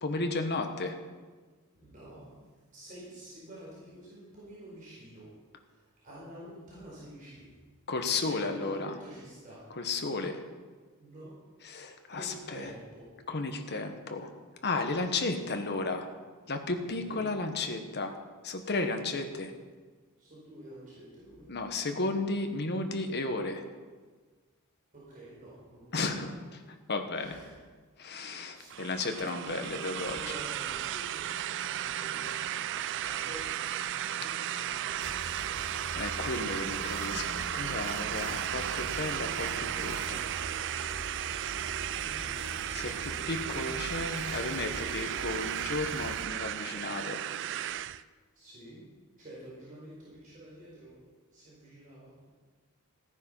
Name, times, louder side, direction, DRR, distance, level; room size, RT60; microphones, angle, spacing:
voice 1, 0.0-1.0 7.9-8.9 9.7-10.4 11.6-12.7 13.3-14.3 14.6-16.1 16.5-18.1 18.4-19.5 21.5-23.6 25.9-26.3 26.9-27.4 28.0-30.2 35.9-40.2 42.7-47.2, left 3 dB, 50° left, 6 dB, 1.3 m, -33 dB
voice 2, 1.7-2.3 2.7-5.3 5.6-7.6 8.2-9.6 10.0-10.3 11.0-11.3 12.1-13.1 16.8-17.3 19.2-19.4 20.2-21.5 24.9-26.3 27.1-27.6 28.4-28.8 29.5-35.7 38.3-38.8 41.9-42.5 48.3-48.8 49.2-50.9 51.3-52.3, right 1 dB, 40° right, -7 dB, 4.6 m, -49 dB
sound 1, 28.7-48.0, right 11 dB, 55° right, 0.4 m, -35 dB
sound 2, 35.0-46.2, left 1 dB, 70° left, 1.3 m, -44 dB
15.0 x 9.8 x 5.7 m, 1.4 s
head